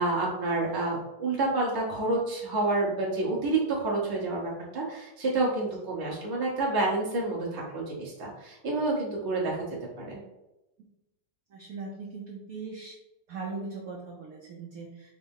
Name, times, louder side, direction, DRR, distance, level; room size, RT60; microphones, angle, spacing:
voice 1, 0.0-9.6 10.0-10.2, right 2 dB, 20° right, -4 dB, 0.5 m, -29 dB
voice 2, 11.5-13.0 13.3-15.1, right 4 dB, 75° right, -1 dB, 0.8 m, -39 dB
5.0 x 2.1 x 3.6 m, 0.96 s
omnidirectional pair, 2.2 m